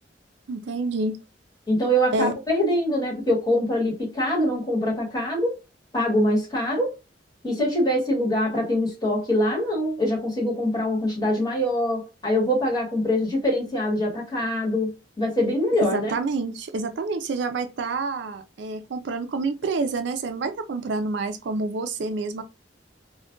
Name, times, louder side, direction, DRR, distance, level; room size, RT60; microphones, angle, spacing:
voice 1, 0.5-1.2 2.1-2.3 15.8-22.4, right 3 dB, 65° right, 0.4 m, -28 dB
voice 2, 1.7-5.5 5.9-6.9 7.4-16.2, left 1 dB, 20° left, 1.2 m, -24 dB
2.3 x 2.1 x 3.6 m
head